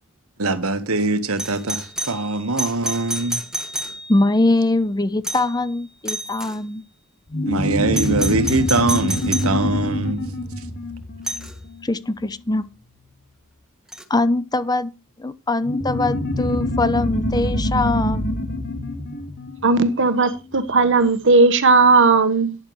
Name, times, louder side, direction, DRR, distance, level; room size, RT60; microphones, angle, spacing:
voice 1, 0.4-3.4 7.4-10.2, right 2 dB, 75° right, 1.4 m, -22 dB
Doorbell, 1.4-4.4 5.2-5.6 6.1-6.6 7.9-9.6 11.3-11.5 13.9-14.0, right 1 dB, 5° right, 1.4 m, -29 dB
voice 2, 4.1-6.8 11.8-12.7 14.1-14.9 15.2-18.4, left 2 dB, 20° left, 0.7 m, -22 dB
sound 1, 7.3-12.3 15.6-20.6, left 1 dB, 50° left, 2.3 m, -25 dB
voice 3, 19.6-22.6, right 3 dB, 60° right, 1.4 m, -16 dB
12.0 x 10.5 x 3.2 m
head